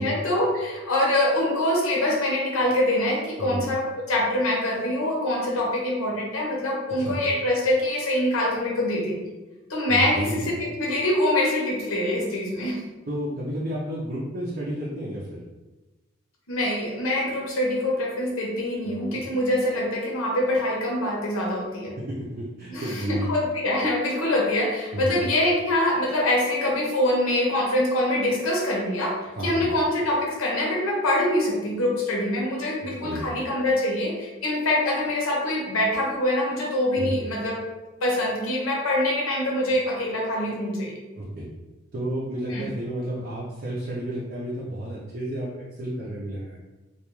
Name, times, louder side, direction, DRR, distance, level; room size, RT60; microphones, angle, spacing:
voice 1, 0.0-9.2 9.7-12.8 16.5-22.0 22.7-37.6 38.0-40.9 42.5-42.6, left 1 dB, 85° left, -3 dB, 0.8 m, -24 dB
voice 2, 3.4-3.7 7.0-7.2 9.9-10.4 13.1-15.4 18.9-19.2 22.0-23.4 24.9-25.2 29.4-29.7 32.8-33.3 37.0-37.1 41.2-41.4 41.9-46.6, right 1 dB, 45° right, -7 dB, 0.5 m, -31 dB
2.3 x 2.2 x 2.9 m, 1.1 s
head